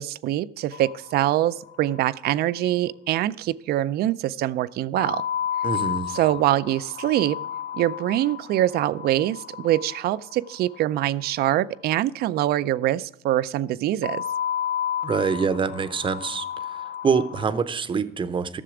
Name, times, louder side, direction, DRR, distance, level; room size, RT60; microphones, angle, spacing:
voice 1, 0.0-5.2 6.1-7.4 7.7-14.2, right 13 dB, 65° right, 17 dB, 0.4 m, -24 dB
sound 1, 0.7-1.7 2.0-2.1 2.3-2.4 5.0-11.1 14.0-17.6, left 9 dB, 80° left, 0.6 m, -32 dB
voice 2, 5.6-6.1 15.0-16.5 17.0-18.6, right 5 dB, 30° right, 13 dB, 0.7 m, -25 dB
13.5 x 6.8 x 4.9 m, 0.81 s
cardioid pair, 110°, 17 cm